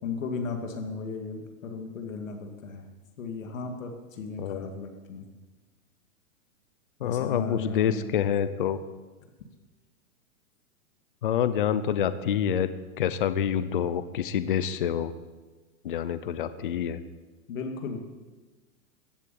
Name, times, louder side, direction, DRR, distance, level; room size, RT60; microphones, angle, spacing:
voice 1, 0.0-2.8 3.2-5.3 7.0-8.2 17.5-18.0, left 4 dB, 60° left, 3 dB, 2.3 m, -35 dB
voice 2, 4.4-4.7 7.0-8.8 11.2-12.7 13.0-15.1 15.8-17.0, left 9 dB, 35° left, 13 dB, 0.6 m, -27 dB
14.5 x 8.4 x 9.2 m, 1.2 s
hypercardioid pair, 175°, 44 cm